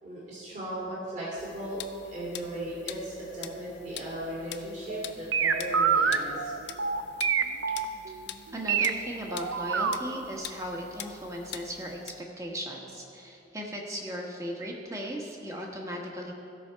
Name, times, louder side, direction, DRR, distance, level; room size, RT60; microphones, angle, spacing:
voice 1, 0.0-1.8 2.1-6.5, right 1 dB, 40° right, -7 dB, 2.6 m, -37 dB
sound 1, 1.4-12.2, left 10 dB, 60° left, 0.5 m, -45 dB
sound 2, 4.9-8.9 9.3-10.0 10.4-10.5, right 6 dB, 85° right, 0.6 m, -26 dB
voice 2, 8.5-16.3, equal, 15° right, -1 dB, 1.2 m, -37 dB
16.0 x 6.3 x 4.6 m, 2.9 s
head